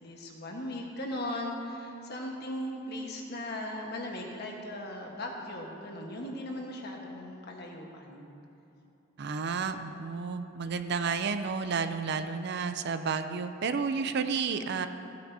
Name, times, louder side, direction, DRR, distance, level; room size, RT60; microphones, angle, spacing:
voice 1, 0.0-8.3, left 1 dB, 55° left, 0 dB, 1.3 m, -38 dB
voice 2, 9.2-14.9, right 5 dB, 55° right, 9 dB, 0.5 m, -31 dB
15.5 x 9.4 x 2.7 m, 2.8 s
head